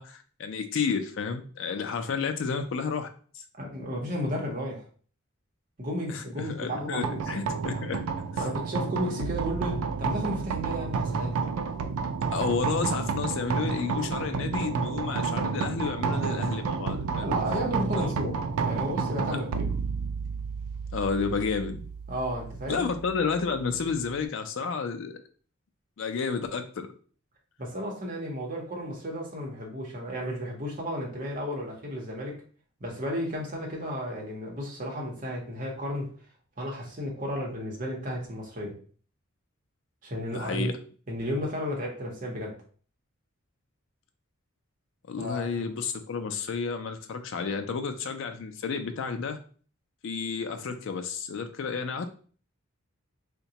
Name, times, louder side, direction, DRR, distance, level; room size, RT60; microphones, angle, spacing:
voice 1, 0.0-3.1 3.3-3.4 6.1-8.0 8.3-8.5 12.3-17.3 17.9-18.3 20.9-21.9 22.7-25.2 26.0-26.9 40.3-40.7 45.1-49.4 50.0-52.1, left 5 dB, 60° left, 0.4 m, -31 dB
voice 2, 3.6-4.8 5.8-7.2 7.7-7.9 8.4-11.4 17.2-18.4 18.6-19.7 22.1-22.9 27.6-32.4 32.8-36.1 36.6-38.8 40.0-40.7 41.1-42.6 45.2-45.7, equal, 40° right, 0.8 m, -33 dB
sound 1, 7.0-24.2, right 5 dB, 80° right, 0.3 m, -31 dB
3.8 x 2.2 x 2.7 m
head